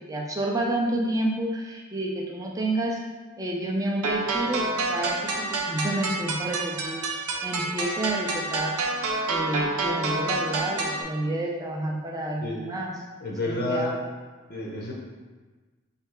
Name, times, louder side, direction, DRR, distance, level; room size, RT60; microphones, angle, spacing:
voice 1, 0.0-3.0 3.4-7.0 7.4-8.8 9.3-12.9 13.4-14.0, right 1 dB, 15° right, -1 dB, 0.4 m, -29 dB
sound 1, 4.0-11.0, right 3 dB, 85° right, 0.6 m, -28 dB
voice 2, 13.2-13.9 14.5-14.9, left 2 dB, 45° left, -3 dB, 0.6 m, -29 dB
3.3 x 2.8 x 4.5 m, 1.3 s
head